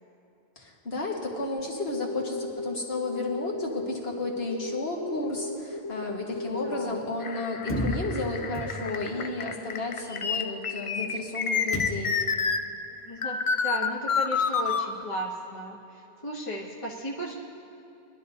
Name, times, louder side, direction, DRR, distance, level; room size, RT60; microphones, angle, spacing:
voice 1, 0.6-12.2, left 2 dB, 65° left, -2 dB, 2.0 m, -32 dB
sound 1, 1.9-12.6 13.2-14.9, left 5 dB, 50° left, 0.4 m, -30 dB
voice 2, 6.6-7.0 13.0-17.3, right 1 dB, 30° left, -4 dB, 1.4 m, -35 dB
sound 2, 7.7-9.2 11.7-12.3, equal, 10° left, 1.1 m, -33 dB
22.0 x 12.5 x 2.8 m, 2.8 s
omnidirectional pair, 1.1 m